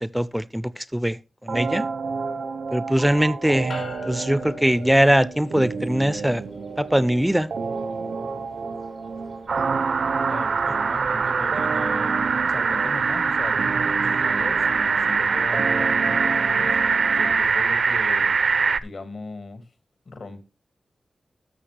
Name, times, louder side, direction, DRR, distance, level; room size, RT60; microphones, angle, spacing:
voice 1, 0.0-1.2 1.4-1.9 2.7-6.4 6.8-7.5, equal, 5° right, 0.4 m, -21 dB
sound 1, 1.5-17.5, right 4 dB, 90° right, 0.8 m, -31 dB
sound 2, 3.7-15.3, left 3 dB, 85° left, 3.3 m, -46 dB
sound 3, 9.5-18.8, right 5 dB, 70° right, 0.4 m, -22 dB
voice 2, 10.3-16.8 17.2-18.4 18.7-19.6 20.1-20.5, left 3 dB, 65° left, 1.9 m, -38 dB
13.0 x 6.7 x 3.3 m
wide cardioid pair, 115°, 0 cm